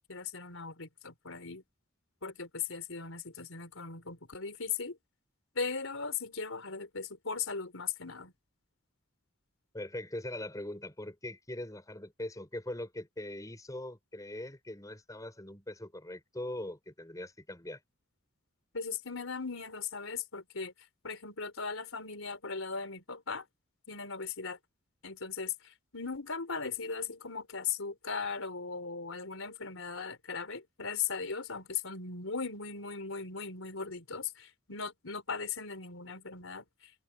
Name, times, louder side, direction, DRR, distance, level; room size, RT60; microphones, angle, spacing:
voice 1, 0.1-1.6 2.2-5.0 5.5-8.3 18.7-20.7 21.0-23.4 23.9-24.6 25.0-36.7, left 5 dB, 80° left, 4.1 m, -38 dB
voice 2, 9.7-17.8, left 1 dB, 15° left, 4.9 m, -41 dB
head